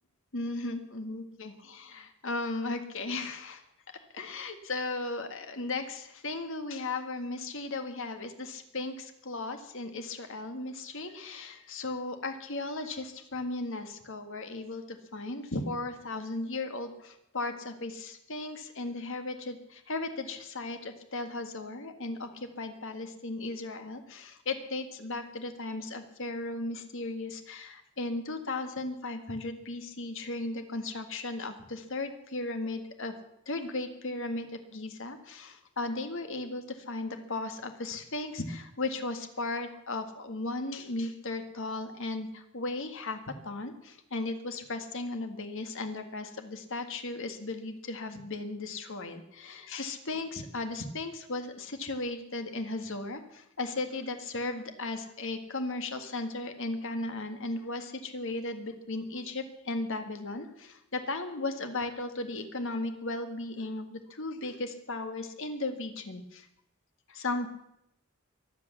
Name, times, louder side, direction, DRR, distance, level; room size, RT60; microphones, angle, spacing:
voice 1, 0.3-3.6 4.1-33.1 33.5-43.2 43.4-66.5 67.1-67.5, left 2 dB, 60° left, 7 dB, 1.8 m, -36 dB
23.0 x 8.3 x 7.2 m, 0.82 s
head